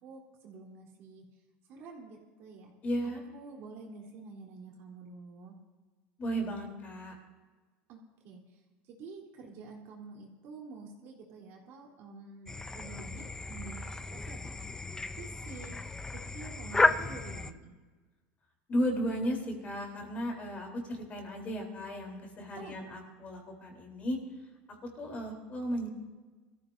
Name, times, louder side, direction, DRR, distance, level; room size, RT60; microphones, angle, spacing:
voice 1, 0.0-1.2 1.7-2.7 3.0-5.6 7.9-14.7 15.1-15.7 16.1-17.7 22.5-22.8, right 4 dB, 55° right, -1 dB, 3.7 m, -48 dB
voice 2, 2.8-3.2 6.2-7.1 18.7-24.2 25.0-25.9, equal, 30° left, 1 dB, 3.8 m, -34 dB
sound 1, 12.5-17.5, left 3 dB, 10° left, 0.6 m, -33 dB
23.0 x 14.5 x 2.7 m, 1.3 s
supercardioid pair, 130°, 5 cm